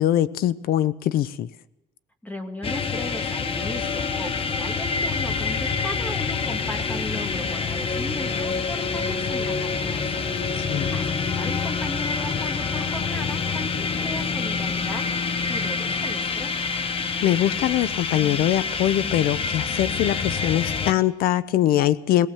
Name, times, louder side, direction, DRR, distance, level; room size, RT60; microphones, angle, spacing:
voice 1, 0.0-1.5 10.6-11.0 17.2-22.3, left 12 dB, 85° left, 16 dB, 0.8 m, -22 dB
voice 2, 2.2-10.2 10.9-15.0 15.5-16.5, left 1 dB, 10° left, 5 dB, 2.5 m, -36 dB
sound 1, 2.6-20.9, left 5 dB, 40° left, 1.3 m, -27 dB
21.5 x 18.0 x 7.4 m, 1.0 s
cardioid pair, 125°, 15 cm